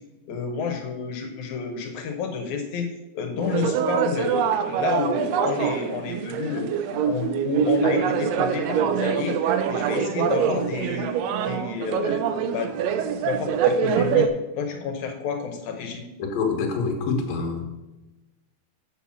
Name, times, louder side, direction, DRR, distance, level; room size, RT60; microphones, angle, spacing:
voice 1, 0.3-6.7 7.0-9.4 9.7-12.8 13.2-16.0, left 6 dB, 85° left, 4 dB, 2.4 m, -30 dB
sound 1, 3.4-14.3, right 8 dB, 75° right, 1.7 m, -24 dB
voice 2, 16.2-17.7, left 4 dB, 65° left, 4 dB, 2.5 m, -26 dB
7.9 x 5.8 x 7.2 m, 1.1 s
omnidirectional pair, 3.3 m